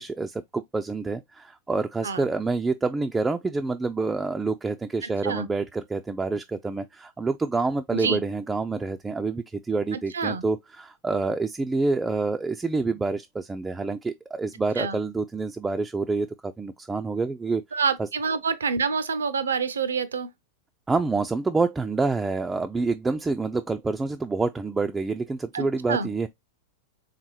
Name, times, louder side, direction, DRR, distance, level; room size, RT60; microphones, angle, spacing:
voice 1, 0.0-18.1 20.9-26.3, right 3 dB, 10° right, 0.3 m, -27 dB
voice 2, 10.1-10.4 14.8-15.0 17.7-20.3 25.5-26.1, right 5 dB, 70° right, 0.5 m, -27 dB
4.1 x 3.6 x 3.0 m
figure-of-eight pair, 90°, 0 cm